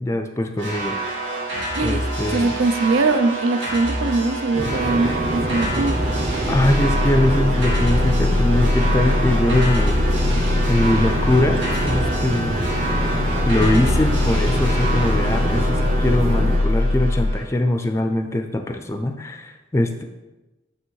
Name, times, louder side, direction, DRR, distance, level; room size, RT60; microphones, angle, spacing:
voice 1, 0.0-1.0 1.8-2.5 6.5-10.0 10.7-12.7 13.5-20.0, left 1 dB, 15° left, 6 dB, 0.4 m, -22 dB
sound 1, 0.6-17.4, right 1 dB, 70° right, 1.9 m, -28 dB
voice 2, 2.3-6.0, right 3 dB, 90° right, 10 dB, 0.5 m, -21 dB
sound 2, 4.5-16.6, right 1 dB, 35° right, 0.7 m, -26 dB
sound 3, 6.5-17.3, left 2 dB, 75° left, 0.4 m, -22 dB
8.9 x 3.4 x 4.6 m, 1.1 s
head